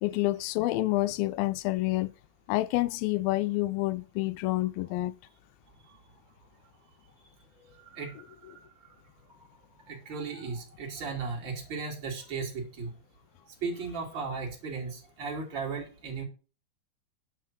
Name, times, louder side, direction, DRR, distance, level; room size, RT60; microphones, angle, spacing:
voice 1, 0.0-2.1 2.5-5.1, left 18 dB, 80° left, 2.4 m, -28 dB
voice 2, 7.6-8.6 9.3-9.5 9.9-12.9 13.6-16.2, right 4 dB, 35° right, 3.5 m, -36 dB
10.0 x 6.2 x 6.1 m
omnidirectional pair, 4.2 m